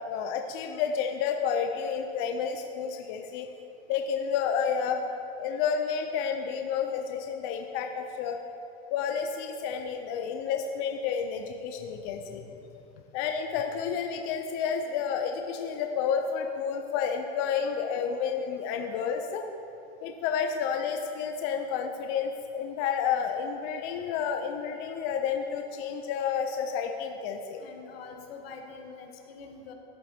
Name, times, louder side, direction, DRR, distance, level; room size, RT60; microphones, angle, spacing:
voice 1, 0.1-3.5 3.9-5.1 5.4-8.4 8.9-12.4 13.1-19.4 20.0-27.6, left 7 dB, 45° left, 4 dB, 0.6 m, -30 dB
voice 2, 27.6-29.7, left 5 dB, 80° left, 3 dB, 1.3 m, -45 dB
12.0 x 7.4 x 2.8 m, 2.9 s
supercardioid pair, 140°, 30 cm